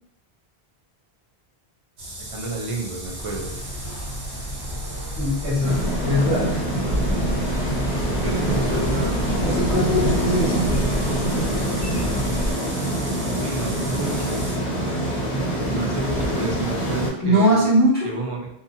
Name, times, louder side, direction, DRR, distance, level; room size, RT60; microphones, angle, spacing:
sound 1, 2.0-14.6, right 1 dB, 85° right, 1.0 m, -37 dB
voice 1, 2.2-3.6 8.2-9.2 13.3-14.5 15.7-17.7 18.0-18.5, right 2 dB, 50° right, -1 dB, 0.4 m, -30 dB
sound 2, 3.0-12.5, equal, 60° left, 0.7 m, -30 dB
voice 2, 5.2-6.7 9.4-10.7 17.2-18.1, equal, 10° left, -10 dB, 1.2 m, -21 dB
sound 3, 5.6-17.1, right 1 dB, 30° left, 1.0 m, -25 dB
2.7 x 2.3 x 2.6 m, 0.77 s
omnidirectional pair, 1.0 m